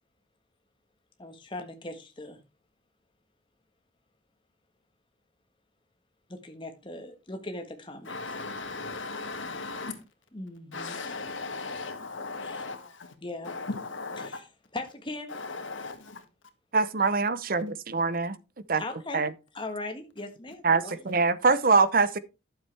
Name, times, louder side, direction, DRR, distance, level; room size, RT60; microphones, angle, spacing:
voice 1, 1.2-2.4 6.3-8.2 10.3-11.0 12.4-12.6 13.2-13.6 14.2-14.4 14.7-15.3 18.8-19.2 19.5-21.1, left 2 dB, 25° left, 1.4 m, -39 dB
voice 2, 8.1-10.0 10.7-13.1 13.4-14.4 15.3-16.2, left 3 dB, 75° left, 1.8 m, -37 dB
voice 3, 16.7-18.4 18.7-18.8 19.1-19.3 20.6-22.2, right 4 dB, 45° right, 0.7 m, -24 dB
11.5 x 7.5 x 3.4 m
head